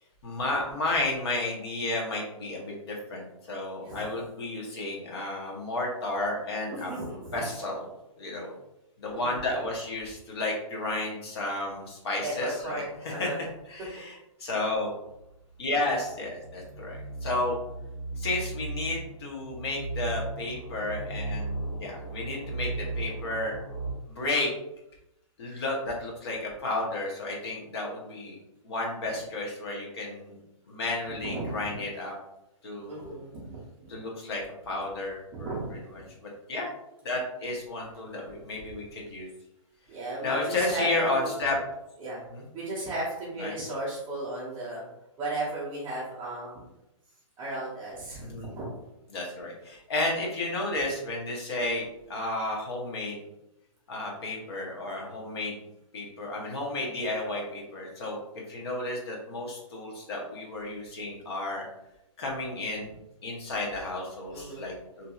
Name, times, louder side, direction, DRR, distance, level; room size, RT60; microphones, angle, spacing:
voice 1, 0.2-6.9 7.3-7.9 8.2-8.5 9.0-13.3 13.7-14.9 15.6-17.6 18.2-23.5 24.1-24.5 25.4-28.4 28.6-30.4 30.7-32.1 32.6-33.2 33.9-35.6 35.9-36.7 37.0-39.3 40.2-41.6 42.3-42.4 43.4-43.5 48.2-48.5 49.1-53.2 53.9-55.6 55.9-61.6 62.2-62.9 63.2-65.1, left 2 dB, 50° left, -1 dB, 0.9 m, -32 dB
voice 2, 6.7-7.5 9.1-9.4 12.2-13.4 31.2-31.7 32.9-33.6 35.3-35.8 39.9-41.3 42.0-42.2 42.5-44.8 45.2-46.5 47.4-48.7 64.3-64.6, right 2 dB, 15° right, -10 dB, 0.5 m, -35 dB
sound 1, 15.1-23.9, right 2 dB, 85° left, 1.4 m, -36 dB
2.7 x 2.6 x 2.3 m, 0.86 s
hypercardioid pair, 160°, 17 cm